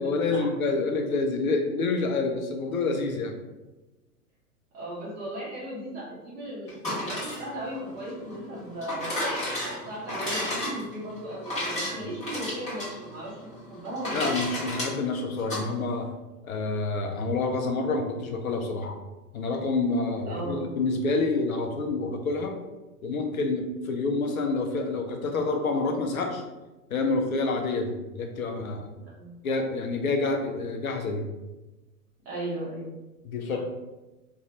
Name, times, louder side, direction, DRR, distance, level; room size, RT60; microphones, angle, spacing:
voice 1, 0.0-3.3 14.1-16.1 16.4-19.0 19.3-22.6 23.0-26.4 26.9-28.9 29.4-31.2 33.2-33.6, left 3 dB, 65° left, 4 dB, 0.5 m, -28 dB
voice 2, 4.7-9.1 9.9-14.3 20.3-20.7 29.1-29.3 32.2-32.9, right 1 dB, 20° right, -6 dB, 0.7 m, -36 dB
sound 1, 6.7-15.6, left 1 dB, 15° left, 0.9 m, -33 dB
2.4 x 2.3 x 2.9 m, 1.1 s
figure-of-eight pair, 100°, 45 cm